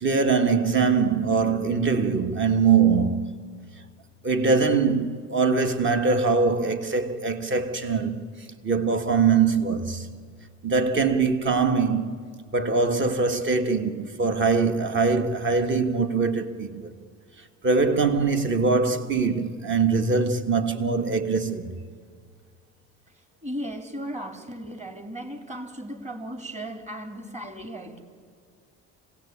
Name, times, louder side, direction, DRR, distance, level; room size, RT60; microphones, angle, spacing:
voice 1, 0.0-3.3 4.2-10.1 10.6-12.2 12.5-16.9 17.6-21.8, right 4 dB, 40° right, 1.8 m, -23 dB
voice 2, 23.4-28.0, equal, 25° right, 2.9 m, -36 dB
25.5 x 17.5 x 8.6 m
cardioid pair, 100°, 30 cm